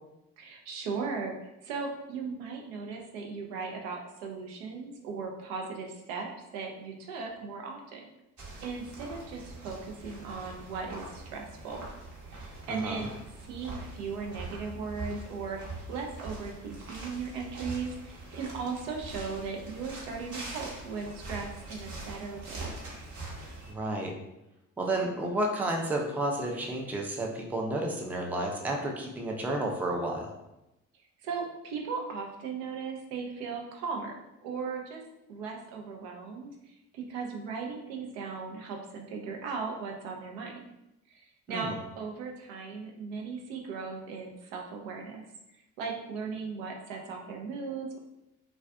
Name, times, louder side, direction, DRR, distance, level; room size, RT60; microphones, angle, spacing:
voice 1, 0.4-8.0 8.6-11.8 12.3-13.1 13.4-15.6 15.9-22.7 31.2-35.0 35.3-40.6 41.1-45.3 45.8-48.0, right 5 dB, 75° right, 1 dB, 0.6 m, -37 dB
sound 1, 8.4-23.7, right 2 dB, 50° right, 0.9 m, -43 dB
voice 2, 12.7-13.1 23.7-24.1 24.8-30.3 41.5-41.8, right 1 dB, 5° right, 0 dB, 0.4 m, -31 dB
2.4 x 2.3 x 2.3 m, 0.91 s
hypercardioid pair, 55°, 40 cm